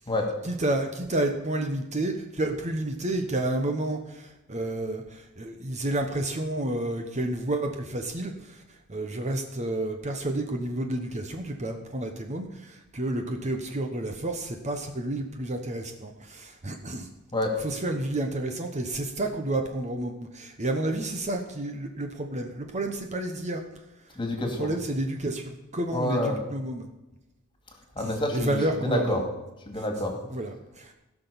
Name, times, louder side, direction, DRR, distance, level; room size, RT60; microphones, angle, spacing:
voice 1, 0.4-17.1 17.6-23.6 24.1-24.2 24.6-26.9 28.0-29.2 29.7-29.8 30.3-30.9, right 1 dB, 30° right, 4 dB, 1.0 m, -30 dB
voice 2, 24.2-24.7 25.9-26.4 28.0-29.2 29.7-30.1, left 1 dB, 20° left, 3 dB, 2.4 m, -28 dB
16.0 x 6.1 x 7.0 m, 0.98 s
head